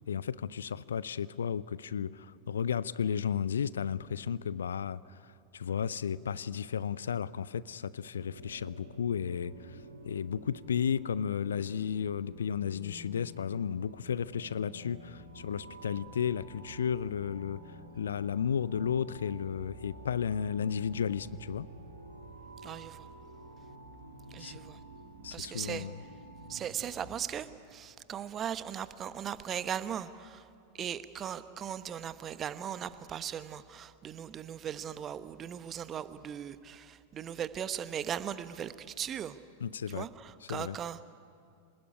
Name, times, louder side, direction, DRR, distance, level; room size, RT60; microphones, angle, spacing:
voice 1, 0.1-9.8 10.1-17.6 18.0-21.7 24.4-24.6 25.2-26.0 39.6-40.1 40.5-40.8, left 7 dB, 65° left, 20 dB, 0.5 m, -33 dB
sound 1, 8.1-27.2, right 1 dB, 85° right, 4.3 m, -50 dB
voice 2, 22.6-23.1 24.3-24.8 25.3-25.9 26.5-30.5 30.7-39.4 39.9-41.0, right 9 dB, 25° right, 14 dB, 1.0 m, -38 dB
25.5 x 19.5 x 9.8 m, 2.4 s
figure-of-eight pair, 90°, 0 cm